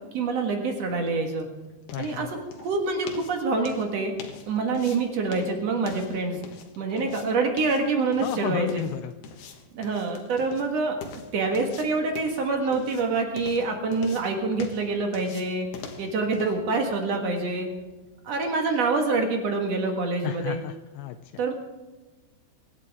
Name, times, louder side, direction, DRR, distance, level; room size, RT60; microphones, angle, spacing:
voice 1, 0.1-1.5 2.0-2.3 2.6-4.1 4.5-6.4 6.8-8.8 9.7-10.9 11.3-15.7 16.0-17.7 18.2-20.6 21.4-21.5, right 3 dB, 70° right, 3 dB, 1.5 m, -26 dB
sound 1, 0.7-18.6, left 5 dB, 65° left, 3.0 m, -45 dB
voice 2, 1.9-2.4 8.2-9.2 20.2-21.4, left 12 dB, 85° left, 9 dB, 2.5 m, -32 dB
25.5 x 12.0 x 3.6 m, 1.2 s
omnidirectional pair, 5.5 m